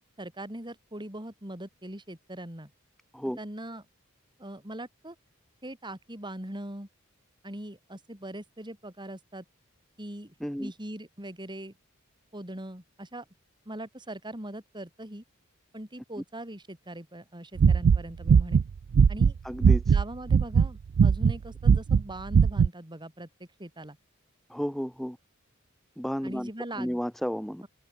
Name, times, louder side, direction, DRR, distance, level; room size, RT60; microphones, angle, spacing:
voice 1, 0.2-2.7 3.4-3.8 4.4-5.2 5.6-6.9 7.4-9.5 10.0-11.7 12.3-13.3 13.7-15.2 15.7-18.6 19.1-19.4 19.9-24.0 26.2-27.0, right 1 dB, 20° right, 5.3 m, -41 dB
voice 2, 10.4-10.7 19.4-20.0 24.5-25.2 26.0-26.5 26.8-27.6, equal, ahead, 1.4 m, -32 dB
sound 1, 17.6-20.0 20.3-20.7 21.0-21.4 21.6-22.0 22.3-22.7, right 6 dB, 55° right, 0.3 m, -19 dB
open air
head